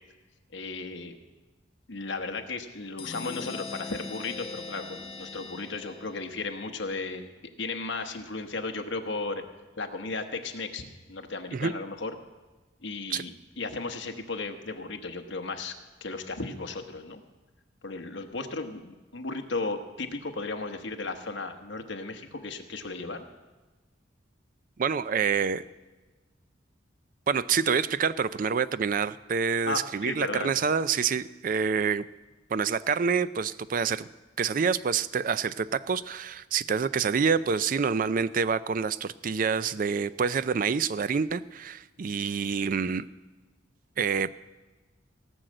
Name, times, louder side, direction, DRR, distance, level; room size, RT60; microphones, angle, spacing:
voice 1, 0.5-1.2 1.9-7.3 7.6-9.4 9.8-12.1 12.8-15.7 16.0-17.2 17.8-23.2 29.7-30.5, left 3 dB, 70° left, 5 dB, 1.1 m, -35 dB
sound 1, 3.0-6.5, left 3 dB, 30° left, 0.7 m, -41 dB
voice 2, 24.8-25.6 27.3-32.1 32.5-34.1 34.4-43.1 44.0-44.3, right 6 dB, 45° right, 16 dB, 0.4 m, -27 dB
17.0 x 6.3 x 7.7 m, 1.2 s
head